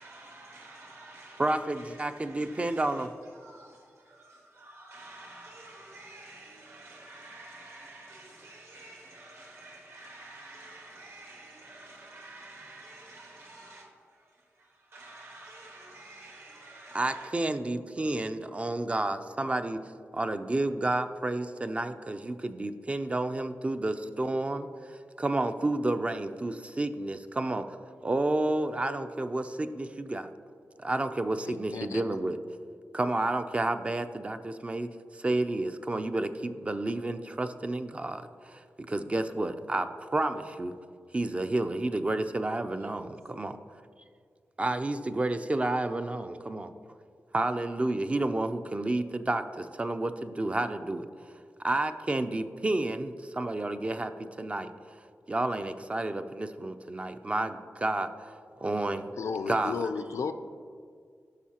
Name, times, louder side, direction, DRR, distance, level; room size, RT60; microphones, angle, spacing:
voice 1, 0.0-17.3 42.8-43.2 58.5-59.6, right 2 dB, 60° right, 1.5 m, -50 dB
voice 2, 1.4-3.1 16.9-19.8 20.1-27.8 28.0-30.3 30.8-32.4 32.9-34.9 35.2-40.8 41.1-43.6 44.6-46.7 47.3-51.1 51.6-54.1 54.4-54.7 55.3-58.3 58.6-59.1 59.5-59.8, right 2 dB, 25° right, 0.3 m, -30 dB
voice 3, 31.5-32.0 59.2-60.3, left 5 dB, 80° left, 0.4 m, -33 dB
13.0 x 5.6 x 2.8 m
wide cardioid pair, 130°, 5 cm